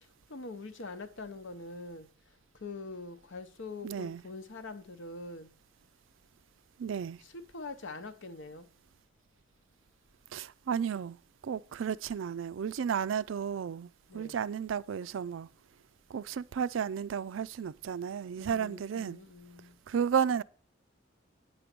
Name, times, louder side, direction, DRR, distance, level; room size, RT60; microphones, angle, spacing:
voice 1, 0.0-5.5 7.2-8.7 14.1-14.5 18.4-19.8, left 3 dB, 75° left, 0.9 m, -44 dB
voice 2, 3.8-4.2 6.8-7.2 10.3-11.2 11.4-15.5 16.1-19.2 19.9-20.4, right 7 dB, 80° right, 0.4 m, -33 dB
9.3 x 5.2 x 6.0 m
head